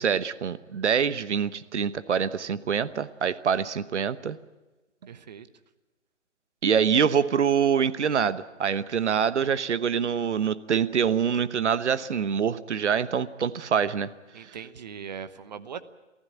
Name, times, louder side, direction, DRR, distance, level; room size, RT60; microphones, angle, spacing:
voice 1, 0.0-4.4 6.6-14.1, right 7 dB, 65° right, 14 dB, 1.1 m, -25 dB
voice 2, 5.0-5.5 14.3-15.8, right 7 dB, 35° right, 13 dB, 1.0 m, -40 dB
24.0 x 15.5 x 9.3 m, 1.1 s
hypercardioid pair, 155°, 37 cm